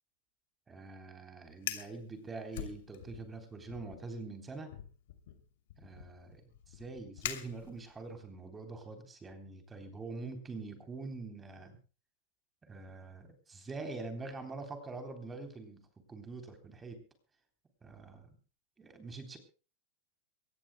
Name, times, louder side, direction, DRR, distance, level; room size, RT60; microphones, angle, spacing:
voice 1, 0.7-4.7 5.8-6.4 6.7-11.8 12.7-17.0 17.8-18.4 18.8-19.4, right 3 dB, 15° right, 6 dB, 3.4 m, -45 dB
Fire, 1.5-2.0 2.5-3.3 3.7-4.0 4.7-8.1, left 12 dB, 70° left, 2.8 m, -43 dB
23.0 x 19.0 x 2.2 m, 0.37 s
supercardioid pair, 160°, 0 cm